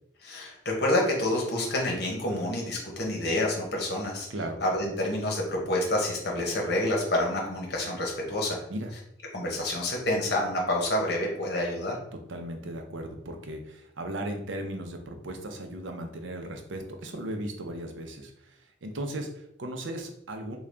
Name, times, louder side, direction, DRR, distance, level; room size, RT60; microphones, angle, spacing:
voice 1, 0.2-4.3 4.6-8.6 9.3-11.9, left 1 dB, 60° left, -1 dB, 1.0 m, -28 dB
voice 2, 12.3-20.6, right 1 dB, 85° right, 4 dB, 0.6 m, -36 dB
3.7 x 2.3 x 3.3 m, 0.76 s
head